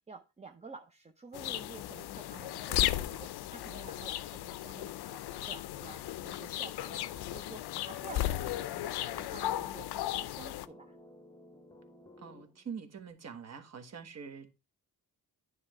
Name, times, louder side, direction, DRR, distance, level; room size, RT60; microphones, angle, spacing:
voice 1, 0.1-11.0, right 4 dB, 20° right, 0.5 m, -51 dB
sound 1, 1.3-10.7, left 14 dB, 85° left, 0.5 m, -35 dB
sound 2, 6.8-12.8, left 2 dB, 10° left, 0.8 m, -56 dB
voice 2, 12.2-14.6, right 6 dB, 45° right, 1.2 m, -45 dB
9.7 x 3.3 x 4.7 m
cardioid pair, 130°, 38 cm